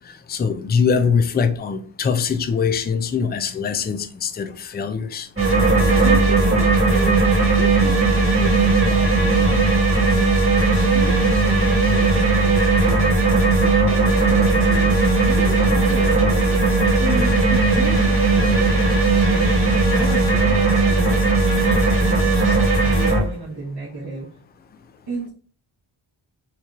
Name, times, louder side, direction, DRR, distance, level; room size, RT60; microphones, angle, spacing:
voice 1, 0.3-5.3, left 6 dB, 25° left, 0.3 m, -22 dB
sound 1, 5.4-23.2, right 3 dB, 25° right, 1.6 m, -17 dB
voice 2, 5.9-16.5 17.0-21.1 21.6-24.3 25.1-25.3, right 2 dB, 55° right, 1.3 m, -34 dB
4.5 x 2.9 x 2.4 m
wide cardioid pair, 80°, 47 cm